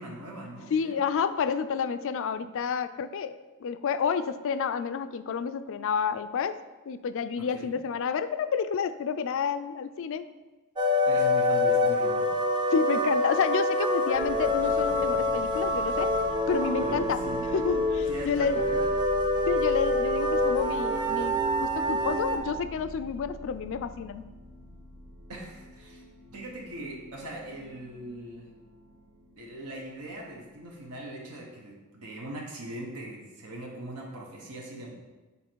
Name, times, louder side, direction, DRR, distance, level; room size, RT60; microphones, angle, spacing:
voice 1, 0.0-1.0 7.4-7.7 11.0-12.3 16.4-17.5 18.0-18.8 25.3-26.0 26.3-28.5 29.4-34.9, right 1 dB, 80° right, -2 dB, 1.1 m, -40 dB
voice 2, 0.7-6.6 6.9-10.3 12.7-16.1 16.5-17.2 17.5-18.6 19.5-24.2, left 6 dB, 60° left, 12 dB, 0.3 m, -29 dB
sound 1, 10.8-22.4, left 1 dB, 20° right, 0.6 m, -26 dB
sound 2, 14.1-30.9, equal, 60° right, 1.2 m, -45 dB
7.1 x 4.1 x 4.5 m, 1.2 s
head